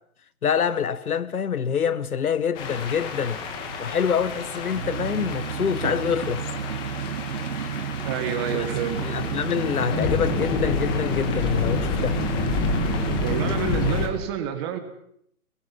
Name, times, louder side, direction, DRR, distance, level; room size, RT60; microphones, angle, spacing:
voice 1, 0.4-3.4 3.8-6.4 8.5-8.6 9.0-12.2, left 7 dB, 80° left, 1.4 m, -26 dB
sound 1, 2.6-14.1, left 5 dB, 10° left, 1.3 m, -29 dB
sound 2, 2.6-13.6, right 8 dB, 55° right, 1.2 m, -32 dB
voice 2, 8.0-9.1 13.2-14.8, right 9 dB, 20° right, 1.6 m, -28 dB
27.5 x 21.0 x 5.5 m
hypercardioid pair, 165°, 43 cm